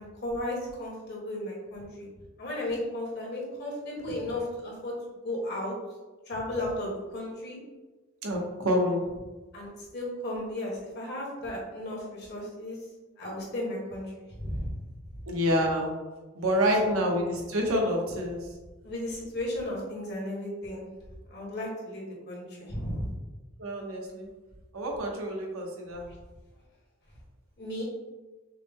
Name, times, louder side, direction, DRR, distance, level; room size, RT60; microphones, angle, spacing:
voice 1, 0.0-2.1 2.4-4.9 5.2-5.7 6.3-7.6 9.5-12.8 13.2-14.7 15.1-15.2 16.8-17.1 18.8-20.9 21.3-23.1 27.6-27.8, left 1 dB, 55° left, -3 dB, 1.4 m, -35 dB
voice 2, 8.2-9.1 15.3-15.9 16.4-18.4 23.6-24.3 24.7-26.1, equal, 85° right, 0 dB, 0.9 m, -27 dB
5.9 x 2.1 x 3.5 m, 1.2 s
head